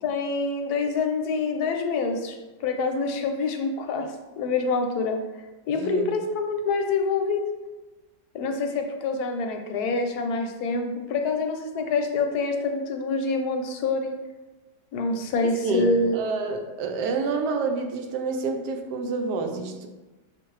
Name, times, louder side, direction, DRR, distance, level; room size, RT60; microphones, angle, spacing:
voice 1, 0.0-2.4 2.6-4.1 4.4-5.2 5.7-7.4 8.3-14.2 14.9-16.2, left 3 dB, 75° left, 4 dB, 1.1 m, -26 dB
voice 2, 5.8-6.1 15.6-15.8 16.1-19.9, right 3 dB, 80° right, 5 dB, 1.2 m, -28 dB
5.8 x 2.5 x 3.1 m, 1.1 s
omnidirectional pair, 1.8 m